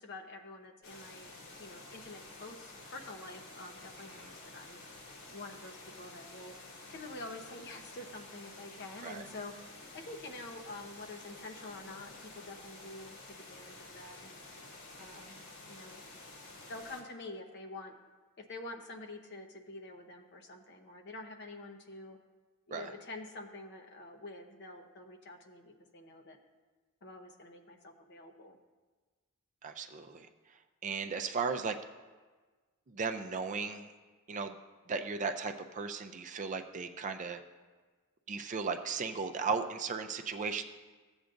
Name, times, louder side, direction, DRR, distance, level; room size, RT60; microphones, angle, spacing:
voice 1, 0.0-1.3 1.6-4.8 5.3-6.5 6.9-9.5 9.9-13.2 13.5-14.4 15.0-15.4 15.7-16.0 16.3-16.4 16.7-17.9 18.4-22.2 22.7-26.4 27.0-28.6, left 2 dB, 55° left, 3 dB, 0.9 m, -47 dB
sound 1, 0.8-17.0, left 2 dB, 85° left, 2.4 m, -51 dB
voice 2, 15.0-15.3 22.7-22.9 29.6-31.8 32.9-33.9 34.3-34.6 34.9-37.4 38.3-40.6, right 5 dB, 35° right, 6 dB, 0.5 m, -36 dB
15.0 x 8.0 x 2.6 m, 1.4 s
head